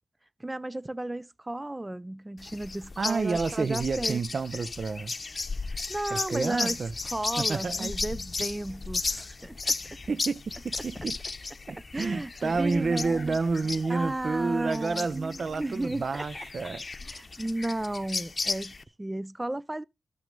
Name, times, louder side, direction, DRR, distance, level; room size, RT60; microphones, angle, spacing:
voice 1, 0.4-4.2 5.9-6.8 7.1-9.8 11.9-13.4 13.9-16.3 17.0-19.8, right 1 dB, 20° right, 0.5 m, -34 dB
sound 1, 2.4-18.8, left 3 dB, 45° left, 1.0 m, -35 dB
voice 2, 3.0-5.2 6.1-6.9 7.4-7.9 10.1-11.2 11.7-16.8, right 4 dB, 65° right, 0.6 m, -29 dB
13.5 x 6.0 x 5.3 m
cardioid pair, 45°, 0 cm